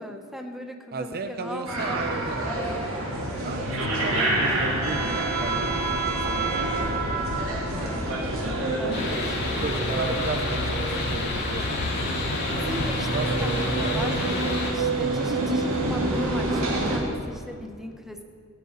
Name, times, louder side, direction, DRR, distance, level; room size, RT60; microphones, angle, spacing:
voice 1, 0.0-2.9 7.7-9.9 12.5-13.5 13.8-14.3 14.7-18.2, equal, ahead, 4 dB, 1.2 m, -39 dB
voice 2, 0.9-2.5 3.3-7.0 9.6-11.8 12.1-12.2 13.1-14.1 15.0-15.3, right 3 dB, 45° right, 8 dB, 0.8 m, -34 dB
sound 1, 1.7-17.0, right 2 dB, 70° right, 3.6 m, -27 dB
sound 2, 3.0-13.1, left 3 dB, 70° left, 0.7 m, -36 dB
sound 3, 8.9-14.7, left 3 dB, 50° left, 3.4 m, -32 dB
18.0 x 16.5 x 4.1 m, 2.3 s
head